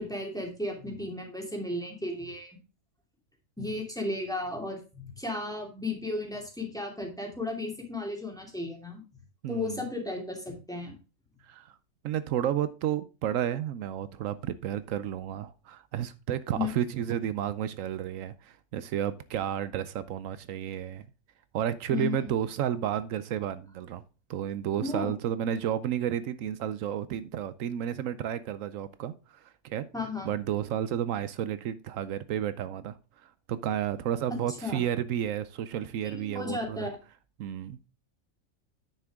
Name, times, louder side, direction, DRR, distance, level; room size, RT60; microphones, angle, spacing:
voice 1, 0.0-2.6 3.6-9.0 9.5-11.0 16.5-16.8 21.9-22.3 24.8-25.1 29.9-30.3 34.3-34.8 36.0-37.0, left 2 dB, 5° left, 2.6 m, -34 dB
voice 2, 9.4-9.8 11.5-11.7 12.0-21.1 21.5-24.0 24.3-29.9 30.2-33.0 33.2-36.9 37.4-37.8, right 10 dB, 80° right, 1.0 m, -32 dB
9.6 x 6.9 x 3.6 m
omnidirectional pair, 1.3 m